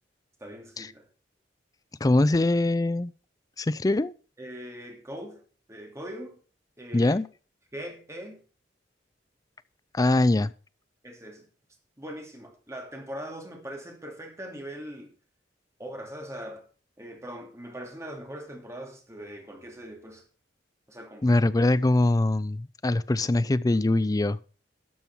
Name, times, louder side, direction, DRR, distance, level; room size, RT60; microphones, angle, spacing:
voice 1, 0.4-1.1 4.4-5.4 5.7-6.4 6.8-7.2 7.7-8.4 11.0-11.5 12.0-15.1 15.8-16.6 17.0-20.2 20.9-21.4, equal, 15° right, 2.6 m, -41 dB
voice 2, 2.0-3.1 3.6-4.1 6.9-7.3 9.9-10.5 21.2-24.4, left 2 dB, 20° left, 0.4 m, -23 dB
12.5 x 6.1 x 5.4 m
head